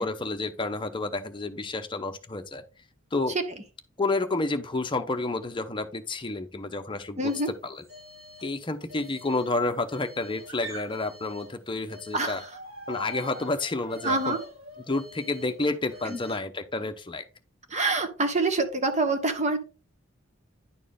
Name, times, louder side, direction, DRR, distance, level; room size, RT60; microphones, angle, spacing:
voice 1, 0.0-2.6 3.1-3.4 4.0-7.3 7.6-7.8 8.4-12.4 12.9-14.4 14.9-17.2, left 2 dB, 25° left, 0.8 m, -30 dB
voice 2, 7.2-7.5 12.1-12.5 14.0-14.4 16.1-16.2 17.7-19.6, right 2 dB, 35° right, 1.3 m, -26 dB
sound 1, 7.2-7.6 7.8-8.6 8.9-11.6 11.9-16.4, right 1 dB, 75° right, 3.6 m, -44 dB
10.0 x 4.5 x 3.6 m
head